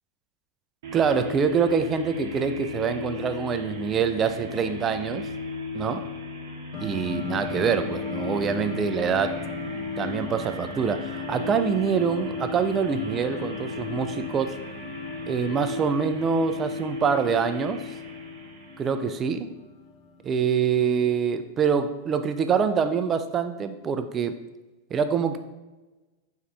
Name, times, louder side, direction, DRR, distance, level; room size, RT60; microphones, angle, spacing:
sound 1, 0.8-19.1, left 3 dB, 55° right, 0.7 m, -35 dB
voice 1, 0.9-5.3 5.7-6.1 6.8-9.4 10.0-14.6 15.3-17.8 18.8-19.5 20.2-24.3 24.9-25.4, right 6 dB, 25° right, 9 dB, 0.3 m, -25 dB
sound 2, 6.7-20.7, left 5 dB, 35° left, 0.5 m, -39 dB
4.5 x 2.3 x 4.6 m, 1.1 s
figure-of-eight pair, 90°, 0 cm